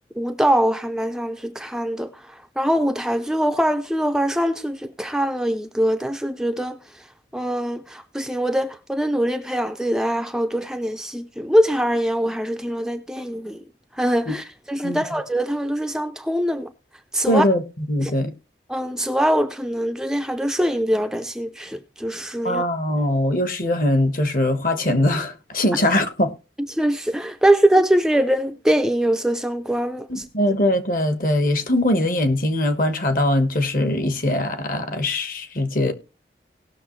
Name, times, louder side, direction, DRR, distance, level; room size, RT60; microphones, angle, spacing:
voice 1, 0.2-2.1 2.6-6.8 7.3-13.6 14.0-16.7 17.1-17.4 18.0-18.1 18.7-22.6 26.7-30.1, right 1 dB, 5° right, 0.5 m, -22 dB
voice 2, 17.3-18.3 22.4-26.3 30.1-35.9, left 1 dB, 50° left, 1.3 m, -21 dB
18.0 x 6.5 x 3.1 m
head